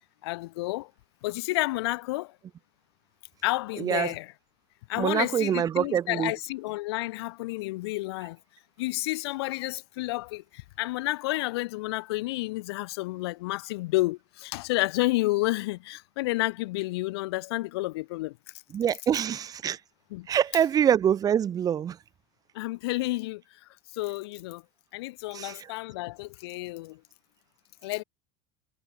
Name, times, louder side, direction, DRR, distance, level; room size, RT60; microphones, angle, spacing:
voice 1, 0.2-0.9 1.2-2.4 3.4-4.3 4.9-8.4 8.8-18.4 20.1-20.3 22.5-23.4 23.9-24.6 24.9-27.0 27.8-28.0, left 20 dB, 80° left, 5.1 m, -30 dB
voice 2, 3.8-4.1 5.0-6.3 18.7-19.8 20.3-22.0 25.3-25.6, right 9 dB, 30° right, 7.8 m, -25 dB
supercardioid pair, 150°, 13 cm